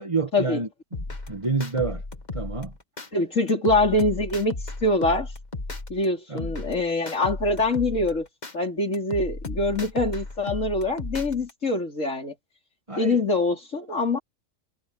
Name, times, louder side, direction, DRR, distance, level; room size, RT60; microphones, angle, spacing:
voice 1, 0.0-2.0 2.3-2.7 6.3-6.5 12.9-13.2, right 4 dB, 25° right, 1.8 m, -29 dB
sound 1, 0.9-3.1 3.5-6.1 6.4-8.5 8.9-11.5, left 2 dB, 35° left, 1.8 m, -35 dB
voice 2, 3.1-4.6 4.8-5.3 5.9-8.3 8.5-12.3 13.0-14.2, left 2 dB, 75° left, 4.5 m, -24 dB
omnidirectional pair, 1.3 m